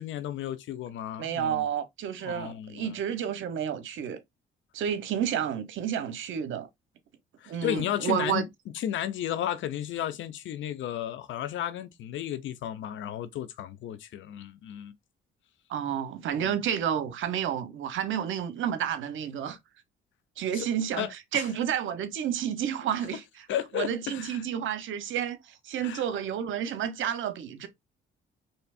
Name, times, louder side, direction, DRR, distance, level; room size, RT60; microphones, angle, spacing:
voice 1, 0.0-1.7 2.2-2.9 7.4-8.5 8.7-14.9 16.4-16.6 20.5-20.7 21.0-21.1 21.3-21.5 23.5-24.4 25.8-26.0, left 11 dB, 75° left, 0.6 m, -33 dB
voice 2, 1.2-4.2 4.7-6.7 7.5-8.4 15.7-19.6 20.4-23.2 23.7-27.7, right 9 dB, 75° right, 0.9 m, -30 dB
4.3 x 3.3 x 2.4 m
cardioid pair, 90°, 20 cm